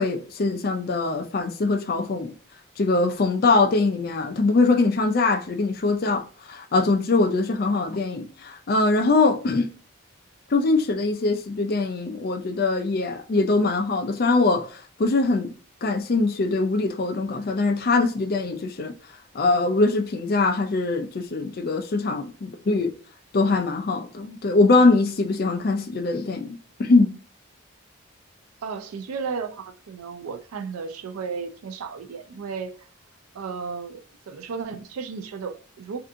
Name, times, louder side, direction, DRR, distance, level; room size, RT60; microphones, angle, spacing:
voice 1, 0.0-2.3 2.8-9.7 10.5-15.5 15.8-18.9 19.3-22.9 23.3-27.1, left 3 dB, 45° left, 0.4 m, -22 dB
voice 2, 28.6-32.9 33.3-36.0, right 5 dB, 85° right, 0.4 m, -34 dB
2.7 x 2.5 x 3.5 m
head